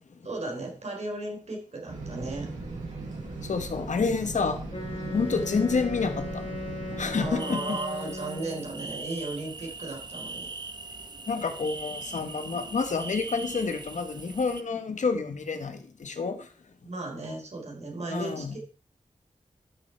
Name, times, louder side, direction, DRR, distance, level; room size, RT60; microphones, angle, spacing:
voice 1, 0.2-2.5 5.0-5.2 7.1-10.5 16.8-18.6, right 2 dB, 60° right, 0 dB, 3.8 m, -35 dB
sound 1, 1.9-7.3, right 3 dB, 85° right, 5.2 m, -38 dB
voice 2, 3.4-4.6 5.1-6.4 7.0-7.8 11.3-16.5 18.1-18.6, left 4 dB, 85° left, 8 dB, 1.4 m, -29 dB
Wind instrument woodwind instrument, 4.7-8.8, left 2 dB, 45° left, 3.2 m, -37 dB
sound 2, 7.4-14.6, right 3 dB, 35° right, 0.8 m, -40 dB
12.5 x 6.7 x 4.5 m, 0.40 s
wide cardioid pair, 110°, 12 cm